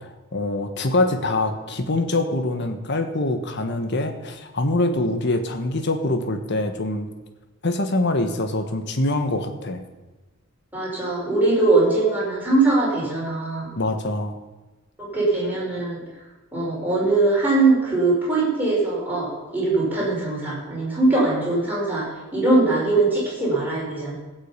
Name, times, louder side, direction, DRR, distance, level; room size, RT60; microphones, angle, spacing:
voice 1, 0.3-7.1 7.6-9.8 13.8-14.4, left 2 dB, 55° left, 7 dB, 1.4 m, -24 dB
voice 2, 10.7-13.7 15.0-16.0 16.5-22.1 22.3-24.1, right 2 dB, 10° right, -6 dB, 5.4 m, -21 dB
16.0 x 6.4 x 8.3 m, 1.2 s
head